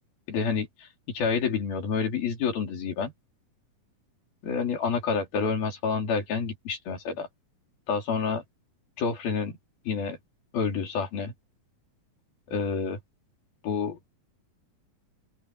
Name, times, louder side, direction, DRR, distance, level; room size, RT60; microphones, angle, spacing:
voice 1, 0.3-3.1 4.4-7.3 7.9-8.4 9.0-9.6 9.9-10.2 10.5-11.3 12.5-13.0 13.6-14.0, left 5 dB, 90° left, 6.0 m, -28 dB
open air
omnidirectional pair, 4.1 m